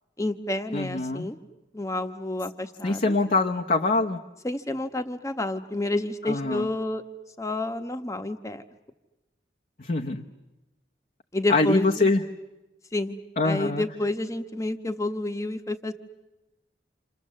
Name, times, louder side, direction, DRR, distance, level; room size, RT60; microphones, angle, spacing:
voice 1, 0.2-1.4 1.7-3.1 4.4-7.0 7.4-8.6 11.3-12.1 12.9-13.2 13.4-15.9, left 2 dB, 15° left, 7 dB, 1.1 m, -29 dB
voice 2, 0.7-1.3 2.8-4.2 6.3-6.6 9.8-10.3 11.5-12.2 13.4-13.8, left 3 dB, 50° left, 2 dB, 0.9 m, -24 dB
28.5 x 28.0 x 7.5 m, 1.0 s
head